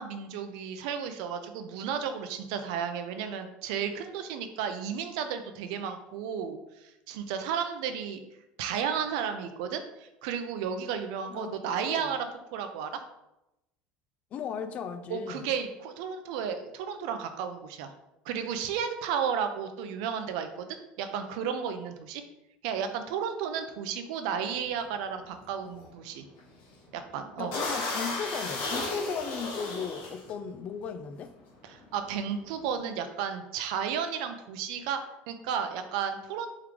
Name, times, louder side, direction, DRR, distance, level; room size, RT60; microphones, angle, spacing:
voice 1, 0.0-8.2 8.6-13.0 15.1-17.9 18.3-22.2 22.6-26.2 26.9-27.6 31.6-35.0 35.3-36.5, right 7 dB, 80° right, 8 dB, 0.5 m, -33 dB
voice 2, 11.3-12.0 14.3-15.5 27.4-31.3, left 6 dB, 35° left, 10 dB, 0.3 m, -36 dB
Spit Take, 24.5-24.8 25.2-25.4 25.7-25.9 26.4-26.7 27.1-27.2 27.5-30.3 31.1-31.3 31.5-32.7, left 2 dB, 70° left, 1.4 m, -34 dB
3.6 x 3.2 x 3.4 m, 0.91 s
cardioid pair, 150°, 4 cm